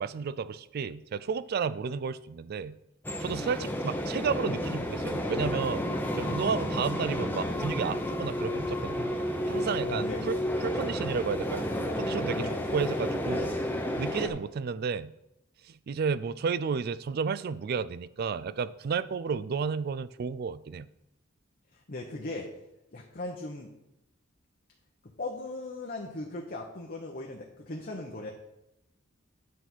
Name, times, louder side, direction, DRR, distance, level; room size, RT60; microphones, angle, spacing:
voice 1, 0.0-2.7 3.2-5.9 6.2-9.1 9.5-11.7 12.0-13.5 14.0-15.1 15.9-20.9, right 5 dB, 50° right, 17 dB, 0.3 m, -32 dB
sound 1, 3.0-14.3, left 1 dB, 10° left, 0.8 m, -31 dB
voice 2, 9.8-10.3 12.3-12.7 21.7-22.5 22.9-23.7 25.2-28.3, left 2 dB, 45° left, 0 dB, 0.9 m, -38 dB
9.4 x 4.2 x 6.0 m, 0.86 s
head